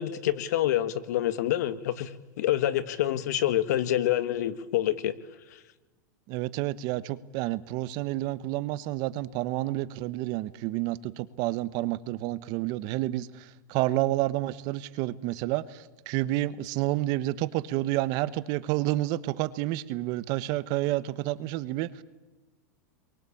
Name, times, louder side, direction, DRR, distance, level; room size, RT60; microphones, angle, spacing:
voice 1, 0.0-2.1 2.4-5.1, left 12 dB, 70° left, 13 dB, 1.7 m, -27 dB
voice 2, 6.3-22.0, right 16 dB, 45° right, 16 dB, 1.2 m, -29 dB
29.0 x 23.0 x 8.7 m, 1.1 s
supercardioid pair, 140°, 9 cm